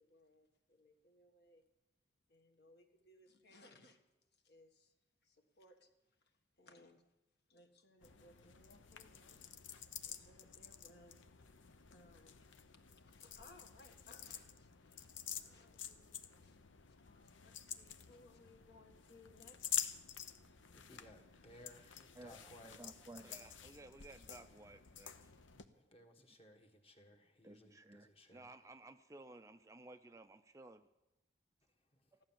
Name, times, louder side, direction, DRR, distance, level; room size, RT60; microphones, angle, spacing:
voice 1, 0.0-1.6 2.3-4.0 4.3-4.9 5.2-7.0 7.5-9.4 10.0-11.2 11.9-12.4 12.7-16.6 17.0-19.8 20.9-21.0, left 2 dB, 55° left, 1.6 m, -65 dB
sound 1, 8.0-25.6, left 9 dB, 80° left, 0.9 m, -49 dB
voice 2, 20.0-20.4 20.7-22.9 25.5-28.6 32.0-32.1, left 1 dB, 30° left, 1.6 m, -61 dB
voice 3, 22.2-25.3 27.4-30.9 32.1-32.2, right 2 dB, 15° right, 0.4 m, -56 dB
15.0 x 11.5 x 7.4 m
head